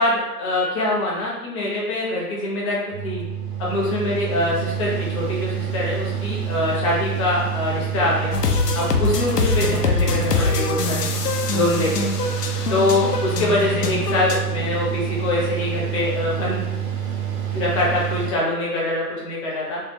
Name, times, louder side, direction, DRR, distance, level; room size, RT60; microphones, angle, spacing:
voice 1, 0.0-3.2 3.6-8.3 8.7-11.1 11.5-12.1 12.7-16.6 17.5-19.8, left 2 dB, 20° left, -5 dB, 0.8 m, -24 dB
Mechanical fan, 2.9-18.3, right 9 dB, 75° right, 1.2 m, -27 dB
sound 1, 8.3-14.4, left 5 dB, 80° left, 0.7 m, -24 dB
3.3 x 3.3 x 3.5 m, 1.0 s
hypercardioid pair, 140°, 47 cm